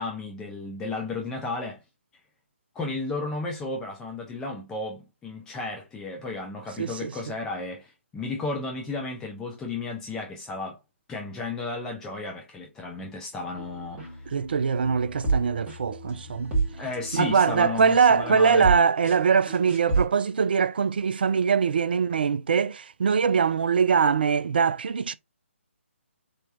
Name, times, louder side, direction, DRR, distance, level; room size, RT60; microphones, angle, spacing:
voice 1, 0.0-1.8 2.7-10.8 11.1-14.3 16.7-18.7, left 3 dB, 10° left, 0.5 m, -33 dB
voice 2, 6.8-7.3 14.3-16.5 17.1-25.1, right 6 dB, 45° right, 0.4 m, -22 dB
sound 1, 13.6-20.1, right 3 dB, 10° right, 1.4 m, -31 dB
4.3 x 3.3 x 2.6 m
figure-of-eight pair, 140°, 7 cm